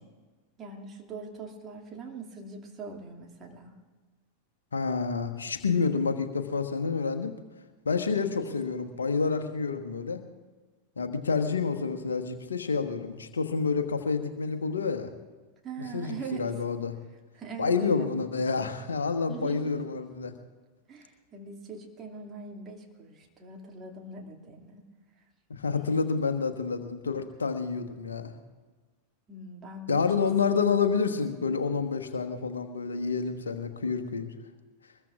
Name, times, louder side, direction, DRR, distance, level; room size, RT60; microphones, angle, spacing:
voice 1, 0.6-3.7 15.6-16.5 17.3-18.1 19.3-19.8 20.9-24.8 25.7-26.1 29.3-30.2, right 4 dB, 25° right, 0 dB, 2.4 m, -42 dB
voice 2, 4.7-7.3 7.8-10.2 11.0-15.1 15.9-16.9 17.6-20.3 25.5-28.3 29.9-34.3, left 5 dB, 70° left, 6 dB, 1.3 m, -28 dB
24.0 x 21.0 x 2.5 m, 1.3 s
figure-of-eight pair, 90°, 0 cm